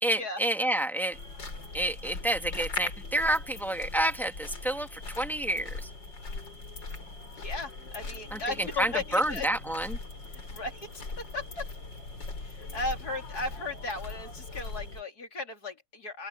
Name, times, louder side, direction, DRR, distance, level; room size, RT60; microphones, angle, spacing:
voice 1, 0.0-1.2 1.7-5.9 8.3-10.0, right 1 dB, ahead, 2.2 m, -29 dB
sound 1, 1.1-15.0, left 3 dB, 80° left, 4.5 m, -40 dB
voice 2, 7.4-9.5 10.5-11.7 12.4-16.3, left 3 dB, 55° left, 3.8 m, -36 dB
open air
omnidirectional pair, 1.9 m